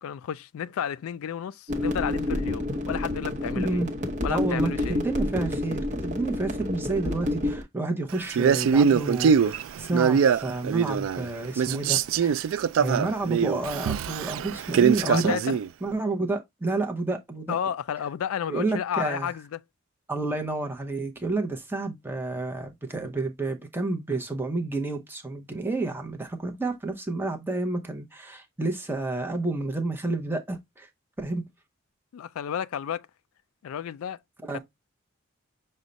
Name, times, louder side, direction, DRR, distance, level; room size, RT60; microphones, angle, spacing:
voice 1, 0.0-3.8 4.2-5.0 15.0-15.6 17.5-19.6 32.1-33.1 33.6-34.2 34.5-34.6, left 8 dB, 85° left, 0.3 m, -32 dB
sound 1, 1.7-7.6, left 1 dB, 35° right, 0.9 m, -29 dB
voice 2, 3.6-3.9 4.3-12.5 12.8-15.4 15.8-17.5 18.5-19.3 20.1-30.9 31.2-31.4 34.4-34.6, right 2 dB, 10° right, 0.6 m, -30 dB
Male speech man speaking, 8.3-11.3 11.6-15.7, right 7 dB, 70° right, 0.3 m, -23 dB
6.2 x 2.1 x 3.9 m
head